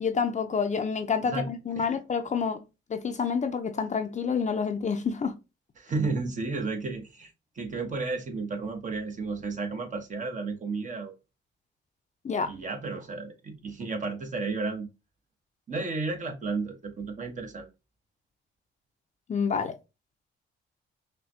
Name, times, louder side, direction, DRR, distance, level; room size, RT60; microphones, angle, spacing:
voice 1, 0.0-2.6 2.9-5.3 12.2-12.5 19.3-19.7, left 6 dB, 35° left, 0.6 m, -28 dB
voice 2, 5.8-7.3 7.6-11.1 12.4-14.9 15.7-17.7, right 3 dB, 40° right, 1.2 m, -32 dB
5.6 x 2.3 x 2.7 m
cardioid pair, 90°, 20 cm